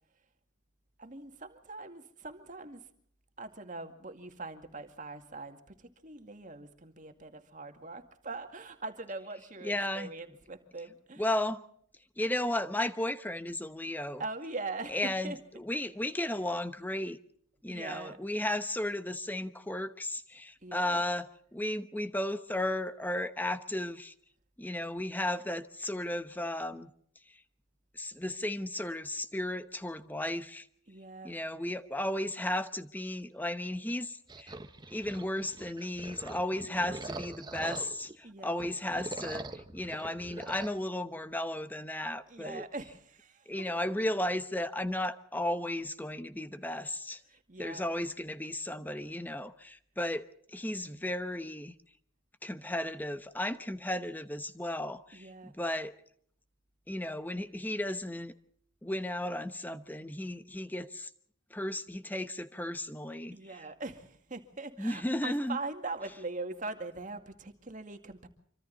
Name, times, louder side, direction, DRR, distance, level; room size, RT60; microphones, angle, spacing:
voice 1, 1.0-2.8 3.4-11.2 14.2-15.6 17.7-18.4 20.6-21.0 30.9-31.4 38.2-38.7 42.3-43.7 47.3-47.8 55.1-55.5 63.3-68.3, right 3 dB, 40° right, 2.2 m, -42 dB
voice 2, 9.6-10.1 11.2-11.6 12.2-14.2 14.9-17.2 17.6-24.1 24.6-26.9 28.0-30.6 31.2-34.6 34.9-42.6 43.5-47.2 47.6-51.7 52.4-55.9 56.9-58.3 58.8-61.1 61.5-63.4 64.8-65.6, left 1 dB, 10° left, 0.9 m, -34 dB
sound 1, 34.3-38.2 38.5-40.7, right 2 dB, 20° right, 1.2 m, -43 dB
26.5 x 25.0 x 4.1 m
head